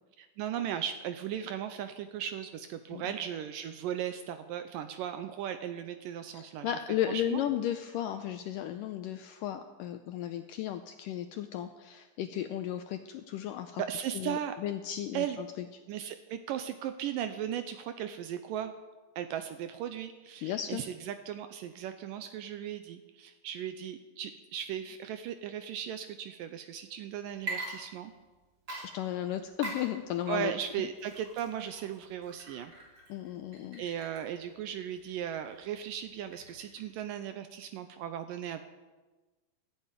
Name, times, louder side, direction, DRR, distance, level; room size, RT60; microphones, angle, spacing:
voice 1, 0.2-6.8 7.1-7.4 13.8-14.6 15.1-15.4 15.9-18.7 19.2-28.1 30.3-32.7 33.8-38.6, right 10 dB, 80° right, 9 dB, 2.1 m, -37 dB
voice 2, 6.3-13.8 14.1-15.5 20.4-20.8 28.8-30.5 33.1-33.8, left 11 dB, 80° left, 8 dB, 1.9 m, -34 dB
Water / Liquid, 27.3-28.4 28.7-36.9, right 2 dB, 30° right, 3.5 m, -44 dB
15.0 x 8.8 x 9.1 m, 1.2 s
omnidirectional pair, 4.4 m